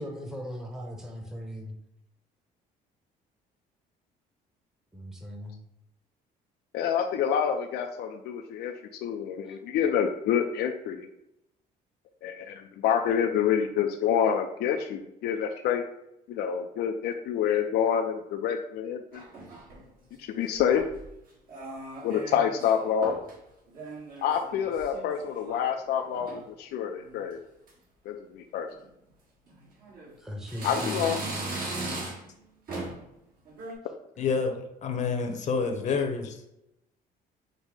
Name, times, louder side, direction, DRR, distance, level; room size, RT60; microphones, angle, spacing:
voice 1, 0.0-1.7 4.9-5.6 9.4-9.6 30.2-32.1, equal, 5° right, 0 dB, 0.8 m, -38 dB
voice 2, 6.7-8.7 9.0-11.1 12.2-15.8 16.3-19.2 20.2-20.8 22.0-23.2 24.2-27.4 28.1-28.7 30.6-31.2, left 8 dB, 75° left, 4 dB, 0.4 m, -27 dB
sound 1, 19.1-19.8 20.5-21.1 21.5-22.7 23.0-23.4 23.7-25.7 26.0-26.4 27.0-27.3 27.7-27.8 28.7-28.8 29.5-30.1 30.5-32.4 32.7-33.1 33.4-33.7, right 2 dB, 60° right, 1.6 m, -38 dB
voice 3, 34.2-34.6 34.8-36.3, left 5 dB, 45° left, 5 dB, 0.8 m, -28 dB
5.2 x 2.1 x 4.7 m, 0.83 s
cardioid pair, 110°, 17 cm